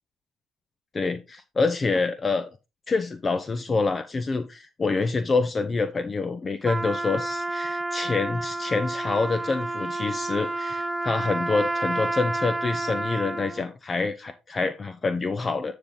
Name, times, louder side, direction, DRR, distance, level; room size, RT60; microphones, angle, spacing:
voice 1, 0.9-2.5 2.9-15.7, left 3 dB, 35° left, 10 dB, 0.8 m, -26 dB
Trumpet, 6.6-13.6, right 2 dB, 20° right, 0.7 m, -30 dB
9.8 x 5.6 x 3.7 m, 0.26 s
hypercardioid pair, 55°, 0 cm